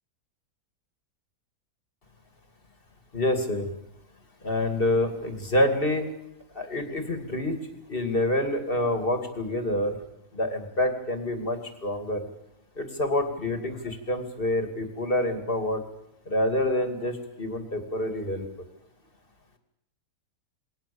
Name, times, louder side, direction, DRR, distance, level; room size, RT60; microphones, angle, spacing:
voice 1, 3.1-3.7 4.4-6.1 6.5-7.6 7.9-10.0 10.3-12.3 12.8-15.8 16.3-18.5, left 1 dB, 35° left, 6 dB, 2.8 m, -27 dB
28.0 x 20.5 x 7.1 m, 0.85 s
omnidirectional pair, 1.7 m